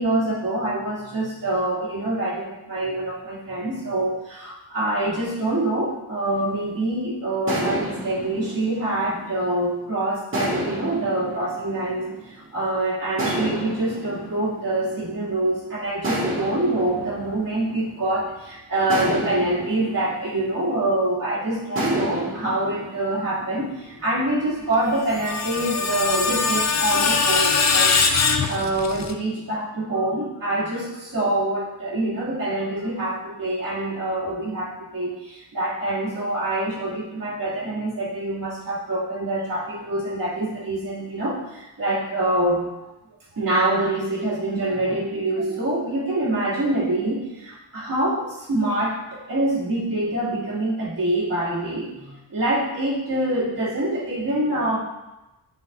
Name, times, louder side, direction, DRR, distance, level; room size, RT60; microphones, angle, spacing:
voice 1, 0.0-42.6 43.3-54.8, right 1 dB, 50° right, -8 dB, 2.6 m, -25 dB
sound 1, 6.2-6.9 7.5-9.7 10.3-12.5 13.2-15.4 16.0-18.3 18.9-21.2 21.8-24.0, right 1 dB, 30° right, 1.9 m, -31 dB
Screech, 24.8-29.1, left 4 dB, 40° left, 0.5 m, -22 dB
10.0 x 5.7 x 2.6 m, 1.0 s
wide cardioid pair, 180°, 41 cm